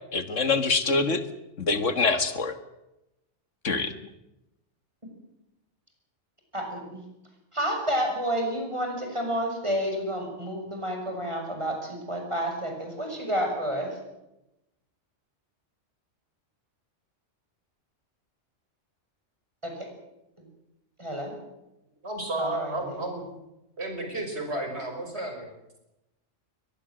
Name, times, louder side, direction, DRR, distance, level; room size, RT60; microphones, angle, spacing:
voice 1, 0.1-1.2 1.6-2.6 3.6-3.9, left 4 dB, 80° left, 10 dB, 2.0 m, -25 dB
voice 2, 6.5-7.0 7.5-14.0 19.6-19.9 20.4-20.5 21.0-21.4 22.4-23.0, equal, 25° right, 2 dB, 6.8 m, -30 dB
voice 3, 22.0-23.3 23.8-25.5, right 2 dB, 60° right, 3 dB, 6.0 m, -32 dB
23.0 x 20.0 x 7.8 m, 0.91 s
omnidirectional pair, 1.2 m